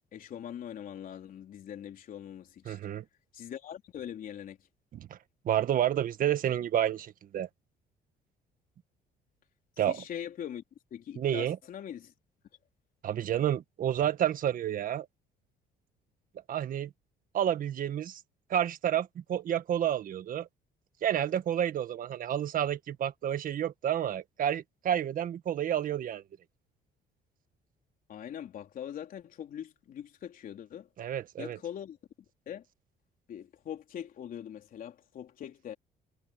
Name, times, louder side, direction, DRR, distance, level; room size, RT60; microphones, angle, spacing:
voice 1, 0.1-2.8 3.3-4.6 9.9-10.6 10.9-12.1 28.1-30.9 31.4-32.0 32.5-32.6 33.3-35.7, left 9 dB, 55° left, 3.8 m, -42 dB
voice 2, 2.6-3.0 4.9-5.2 5.4-7.5 9.8-10.0 11.2-11.6 13.0-15.1 16.5-16.9 17.3-18.2 18.5-20.5 21.0-26.2 31.0-31.6, right 10 dB, 55° right, 1.7 m, -30 dB
cardioid pair, 110°, 17 cm